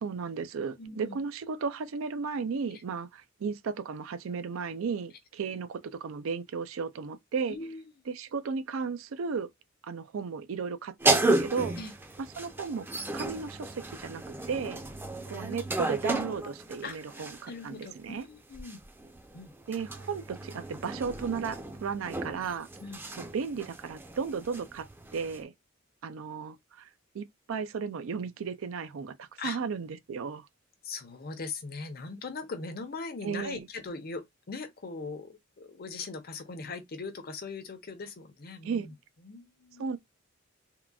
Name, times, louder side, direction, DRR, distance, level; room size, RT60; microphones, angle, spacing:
voice 1, 0.0-7.6 8.1-9.5 9.8-11.8 12.4-12.9 13.1-14.2 14.5-14.8 15.3-18.2 19.7-22.7 23.2-25.5 26.0-26.9 27.1-30.5 33.2-33.6 38.6-38.9 39.8-40.0, right 5 dB, 75° right, 0.4 m, -35 dB
voice 2, 0.8-1.2 7.5-7.9 11.7-11.9 16.8-17.0 17.5-18.8 19.3-19.5 22.8-23.0 29.4-29.6 30.8-38.9 39.2-39.9, left 4 dB, 50° left, 0.7 m, -40 dB
sound 1, 11.0-17.6 18.5-25.4, right 2 dB, 10° right, 0.5 m, -33 dB
3.7 x 2.2 x 2.3 m
head